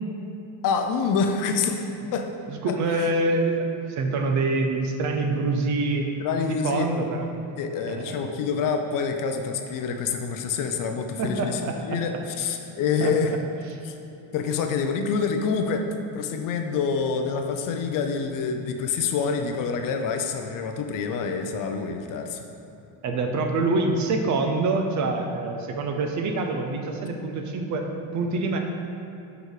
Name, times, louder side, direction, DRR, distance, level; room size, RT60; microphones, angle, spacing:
voice 1, 0.6-1.8 2.1-2.3 2.6-3.1 6.2-6.9 7.6-11.6 11.9-13.4 13.8-13.9 14.3-15.9 16.1-22.5, left 5 dB, 50° left, 5 dB, 0.5 m, -27 dB
voice 2, 2.5-6.1 6.5-7.3 7.9-8.2 11.2-12.2 13.0-13.1 23.0-27.9 28.1-28.6, right 3 dB, 45° right, 4 dB, 0.6 m, -26 dB
6.6 x 5.1 x 4.8 m, 2.8 s
cardioid pair, 170°, 43 cm